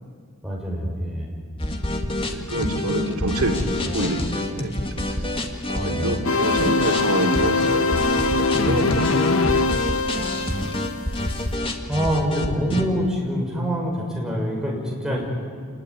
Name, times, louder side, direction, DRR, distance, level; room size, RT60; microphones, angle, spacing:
voice 1, 0.4-1.3 5.7-6.1 11.9-15.3, equal, 5° right, -3 dB, 6.2 m, -25 dB
sound 1, 1.6-12.8, left 1 dB, 25° left, 1.9 m, -27 dB
voice 2, 2.3-5.0 5.7-9.8, right 1 dB, 90° right, 2 dB, 2.9 m, -27 dB
sound 2, 6.2-11.5, left 3 dB, 70° left, 1.5 m, -22 dB
27.5 x 20.5 x 9.9 m, 2.1 s
head